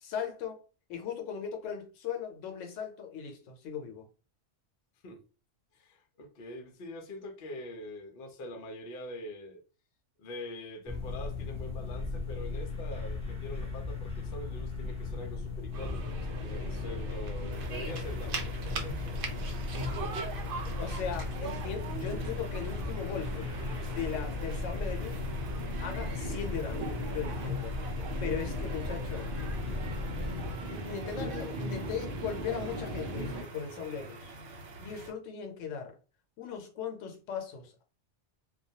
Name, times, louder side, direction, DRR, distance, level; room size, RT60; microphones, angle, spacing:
voice 1, 0.0-4.1 16.6-17.0 19.7-20.2 20.8-23.5 23.9-25.3 25.8-27.7 28.2-29.3 30.2-34.3 34.8-36.0 36.4-37.8, left 7 dB, 90° left, 1.0 m, -38 dB
voice 2, 5.7-9.6 10.2-19.3, left 1 dB, 60° left, 0.7 m, -44 dB
sound 1, 10.9-30.5, left 3 dB, 10° left, 0.3 m, -37 dB
sound 2, 15.7-33.4, right 2 dB, 60° right, 0.6 m, -39 dB
sound 3, 17.5-35.1, right 2 dB, 80° right, 0.9 m, -48 dB
2.2 x 2.2 x 2.7 m
omnidirectional pair, 1.3 m